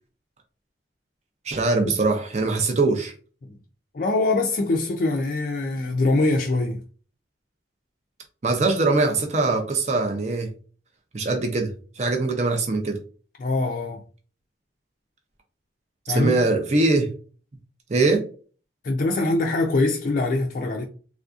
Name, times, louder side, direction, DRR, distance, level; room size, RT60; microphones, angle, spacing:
voice 1, 1.5-3.1 8.4-10.5 11.1-11.7 12.0-13.0 16.1-17.1 17.9-18.3, right 3 dB, 40° right, 0.5 m, -22 dB
voice 2, 3.9-6.8 13.4-14.0 16.1-16.3 18.8-20.8, left 2 dB, 45° left, 0.4 m, -23 dB
3.4 x 2.6 x 2.3 m
head